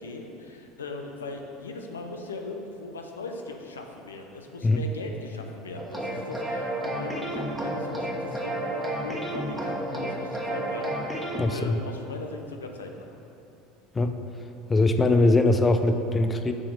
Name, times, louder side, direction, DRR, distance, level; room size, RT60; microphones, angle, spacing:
voice 1, 0.0-13.2, left 3 dB, 90° left, 3 dB, 0.6 m, -39 dB
sound 1, 5.8-11.4, right 1 dB, 5° right, 1.4 m, -31 dB
voice 2, 11.4-11.8 13.9-14.2 14.7-16.5, left 2 dB, 20° left, 7 dB, 0.5 m, -21 dB
6.1 x 4.2 x 6.5 m, 2.9 s
hypercardioid pair, 75°, 0 cm